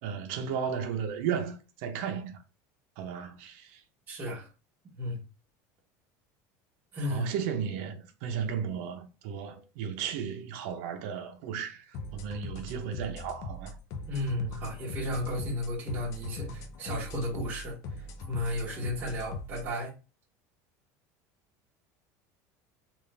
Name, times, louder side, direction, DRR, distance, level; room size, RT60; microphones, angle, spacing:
voice 1, 0.0-2.4 3.0-3.8 7.1-13.8, right 7 dB, 65° right, 0.9 m, -34 dB
voice 2, 4.1-4.5 4.9-5.2 6.9-7.3 14.1-19.9, left 1 dB, 20° right, 1.3 m, -34 dB
sound 1, 11.9-19.7, left 2 dB, 45° left, 0.6 m, -41 dB
3.5 x 2.5 x 3.4 m
cardioid pair, 170°, 8 cm